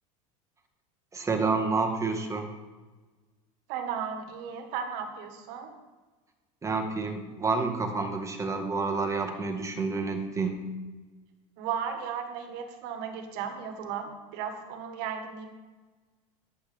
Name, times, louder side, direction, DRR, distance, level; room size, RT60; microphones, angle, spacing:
voice 1, 1.1-2.5 6.6-10.7, right 4 dB, 15° right, 4 dB, 1.6 m, -29 dB
voice 2, 3.7-5.7 11.6-15.5, right 7 dB, 65° right, 6 dB, 1.7 m, -35 dB
11.5 x 8.4 x 3.6 m, 1.3 s
supercardioid pair, 105°, 17 cm